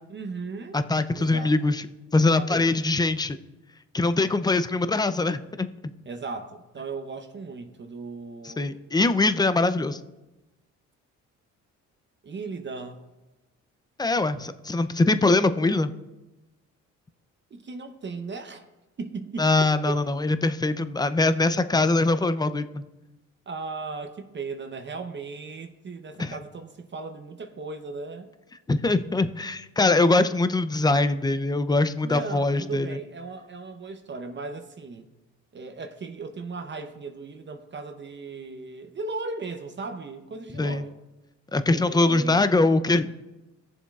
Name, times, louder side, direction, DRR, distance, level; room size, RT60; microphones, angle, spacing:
voice 1, 0.1-0.8 1.2-1.7 2.3-2.8 6.1-8.8 12.2-13.0 15.2-15.8 17.5-18.6 19.0-20.0 23.5-28.3 32.0-35.1 35.5-40.9 41.7-42.5, right 4 dB, 40° right, 5 dB, 0.8 m, -37 dB
voice 2, 0.7-1.9 2.1-3.4 3.9-5.7 8.4-10.0 14.0-15.9 19.4-22.8 26.2-26.4 28.7-33.0 40.6-40.8 41.5-43.1, left 2 dB, 15° left, 12 dB, 0.5 m, -23 dB
17.5 x 7.1 x 2.4 m, 1.0 s
cardioid pair, 90°, 30 cm